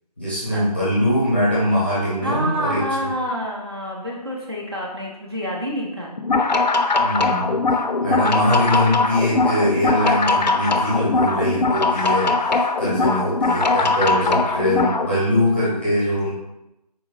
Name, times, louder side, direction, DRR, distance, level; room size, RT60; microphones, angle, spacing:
voice 1, 0.2-2.8 7.0-7.6 8.0-16.3, left 1 dB, 15° left, -10 dB, 0.7 m, -22 dB
voice 2, 2.2-6.2, equal, 40° right, -4 dB, 0.5 m, -27 dB
sound 1, 6.2-15.1, left 3 dB, 90° left, 0.4 m, -20 dB
3.9 x 2.7 x 2.5 m, 0.91 s
figure-of-eight pair, 165°, 21 cm